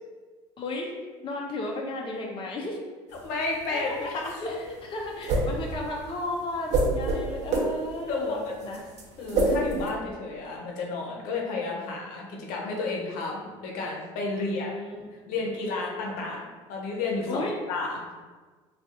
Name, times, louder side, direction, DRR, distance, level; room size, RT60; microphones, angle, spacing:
voice 1, 0.6-0.9 1.2-2.8 3.7-4.1 4.4-8.8 14.3-15.4 17.3-17.6, left 2 dB, 35° left, -1 dB, 0.5 m, -34 dB
sound 1, 3.1-9.9, right 2 dB, 50° right, 0.8 m, -27 dB
voice 2, 3.2-4.4 8.1-8.6 9.2-14.7 15.3-18.0, left 3 dB, 65° left, -1 dB, 0.7 m, -31 dB
2.4 x 2.4 x 4.0 m, 1.4 s
hypercardioid pair, 75°, 15 cm